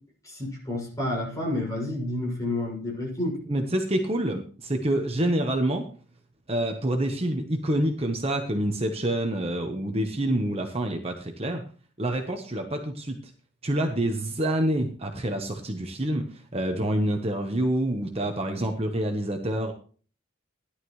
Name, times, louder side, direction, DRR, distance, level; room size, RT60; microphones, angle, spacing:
voice 1, 0.2-3.4, left 1 dB, 15° left, -3 dB, 6.5 m, -30 dB
voice 2, 3.5-5.9 6.5-11.6 12.0-13.2 13.6-19.7, right 1 dB, 30° right, 4 dB, 1.1 m, -27 dB
16.5 x 11.5 x 3.2 m, 0.41 s
head